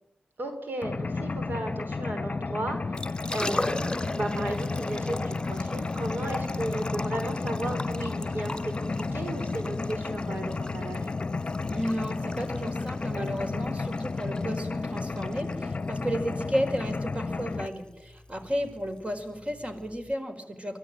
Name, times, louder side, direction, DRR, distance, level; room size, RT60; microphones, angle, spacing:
voice 1, 0.4-11.1, right 1 dB, 75° right, 5 dB, 4.2 m, -35 dB
Mechanisms, 0.8-17.7, left 3 dB, 50° left, 0.8 m, -32 dB
Liquid, 2.8-20.1, left 2 dB, 25° left, 2.2 m, -39 dB
voice 2, 11.7-20.8, equal, 35° right, 6 dB, 4.8 m, -33 dB
24.5 x 17.5 x 9.0 m, 0.83 s
cardioid pair, 55°, 3 cm